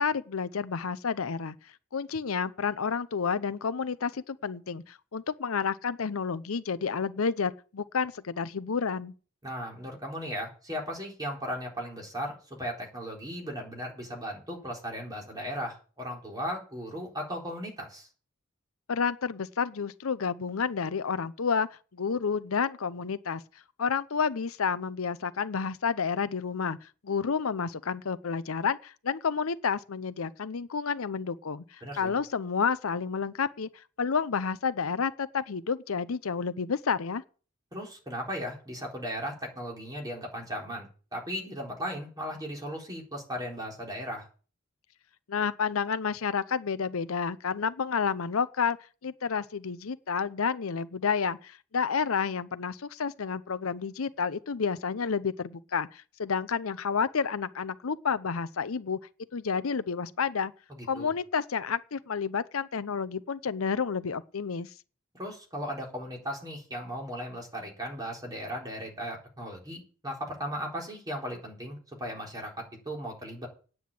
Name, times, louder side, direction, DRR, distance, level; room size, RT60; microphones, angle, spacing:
voice 1, 0.0-1.6 1.9-9.1 18.9-21.7 21.9-23.4 23.8-26.8 27.0-33.7 34.0-37.2 45.3-48.8 49.0-59.0 59.3-60.5 60.9-64.7, left 6 dB, 90° left, 0.7 m, -30 dB
voice 2, 9.4-18.1 31.8-32.1 37.7-44.3 60.7-61.1 65.1-73.5, equal, 20° right, 4.0 m, -37 dB
9.5 x 7.8 x 8.4 m
head